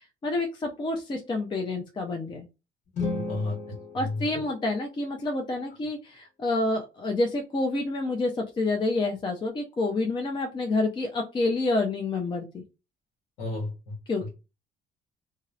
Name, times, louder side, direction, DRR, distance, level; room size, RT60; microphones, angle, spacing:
voice 1, 0.0-2.5 3.9-12.6 14.1-14.3, left 2 dB, 25° left, 2 dB, 0.5 m, -28 dB
sound 1, 2.9-5.1, left 3 dB, 45° left, 1.0 m, -35 dB
voice 2, 3.1-4.4 13.4-13.9, left 2 dB, 90° left, 0 dB, 1.0 m, -33 dB
2.7 x 2.0 x 2.3 m, 0.28 s
cardioid pair, 110°, 17 cm